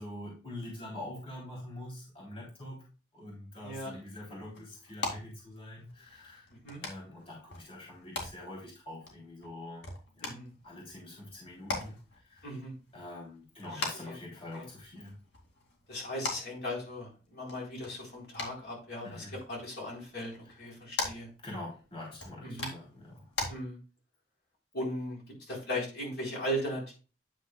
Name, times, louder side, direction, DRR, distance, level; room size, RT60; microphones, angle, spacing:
voice 1, 0.0-2.8 3.1-6.5 6.8-9.8 10.2-10.4 10.6-12.5 12.9-15.2 19.0-19.4 21.4-23.3, left 1 dB, 30° left, -4 dB, 3.2 m, -45 dB
voice 2, 3.6-3.9 6.6-6.8 10.2-10.5 12.4-12.7 13.7-14.1 14.5-14.7 15.9-21.3 22.4-22.7 23.5-23.8 24.7-26.9, equal, 65° left, -2 dB, 4.0 m, -38 dB
sound 1, 3.7-23.5, left 3 dB, 85° left, 2.5 m, -43 dB
9.5 x 7.3 x 2.3 m, 0.33 s
head